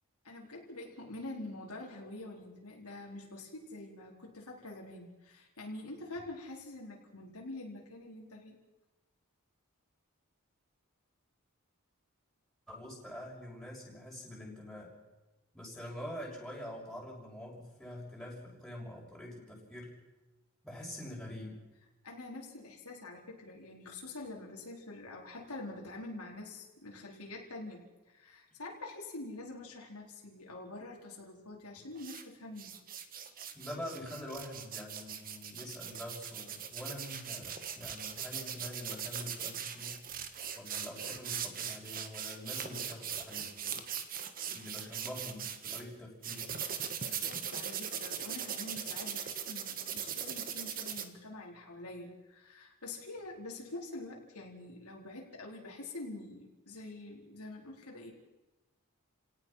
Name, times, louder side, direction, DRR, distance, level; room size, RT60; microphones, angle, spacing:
voice 1, 0.2-8.6 22.0-32.8 46.8-58.1, left 2 dB, 85° left, -1 dB, 4.5 m, -46 dB
voice 2, 12.7-14.9 15.5-20.0 20.6-21.6 33.5-40.1 40.5-43.9 44.5-46.5, left 1 dB, ahead, -4 dB, 6.2 m, -45 dB
sound 1, 32.0-32.2 32.6-45.8 46.2-51.0, right 8 dB, 40° right, 1.6 m, -40 dB
30.0 x 18.0 x 5.8 m, 1.1 s
head